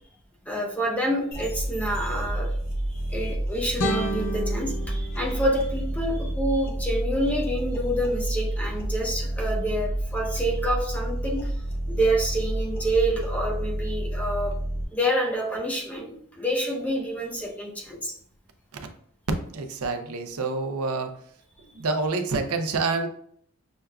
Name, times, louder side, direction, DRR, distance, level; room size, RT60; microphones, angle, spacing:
voice 1, 0.5-2.6 2.9-11.5 11.9-14.5 14.9-18.1, right 1 dB, 5° left, -2 dB, 0.6 m, -27 dB
sound 1, 1.3-14.8, right 1 dB, 45° left, 0.9 m, -30 dB
sound 2, 3.8-6.8, equal, 80° left, 0.6 m, -33 dB
voice 2, 19.5-21.1 21.6-23.1, right 3 dB, 80° right, 6 dB, 0.6 m, -28 dB
6.3 x 2.3 x 2.2 m, 0.63 s
head